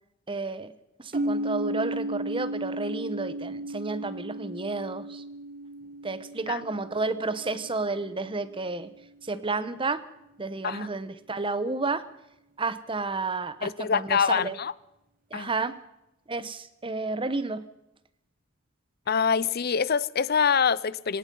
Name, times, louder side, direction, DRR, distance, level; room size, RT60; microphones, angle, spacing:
voice 1, 0.3-0.7 1.0-5.2 6.0-8.9 9.2-10.0 10.4-12.1 12.6-14.5 15.3-15.8 16.3-17.6, right 3 dB, 25° right, 1.1 m, -31 dB
sound 1, 1.1-8.9, right 1 dB, 45° right, 1.6 m, -35 dB
voice 2, 13.6-14.7 15.3-15.5 19.1-21.2, left 6 dB, 50° left, 0.7 m, -25 dB
26.0 x 18.0 x 5.5 m
head